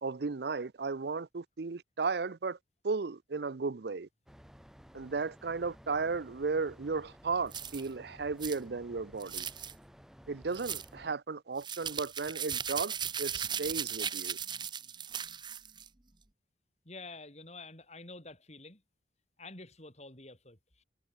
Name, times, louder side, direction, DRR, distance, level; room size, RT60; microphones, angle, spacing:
voice 1, 0.0-2.6 2.8-4.1 4.9-9.5 10.3-14.4, right 4 dB, 60° right, 0.6 m, -35 dB
sound 1, 4.3-11.1, equal, ahead, 2.6 m, -55 dB
sound 2, 7.5-7.9 8.4-8.6 9.2-9.7 10.5-10.9 11.6-15.9, right 8 dB, 25° right, 1.0 m, -37 dB
voice 2, 16.8-18.8 19.4-20.8, left 3 dB, 35° left, 4.6 m, -48 dB
head